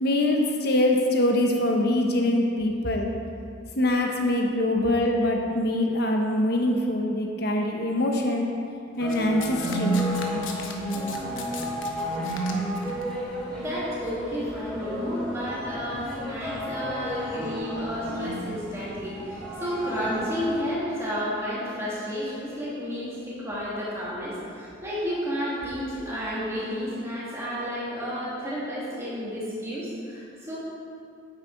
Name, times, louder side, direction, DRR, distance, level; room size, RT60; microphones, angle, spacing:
voice 1, 0.0-3.1 3.7-8.5 9.0-10.0, left 1 dB, 55° left, 1 dB, 1.1 m, -24 dB
sound 1, 9.0-20.6, equal, 5° left, 2.0 m, -31 dB
Domestic sounds home sounds, 9.1-13.0 13.9-14.1, left 6 dB, 75° left, 1.0 m, -39 dB
voice 2, 13.0-30.6, equal, 15° right, -9 dB, 2.5 m, -32 dB
9.5 x 8.5 x 4.0 m, 2.4 s
head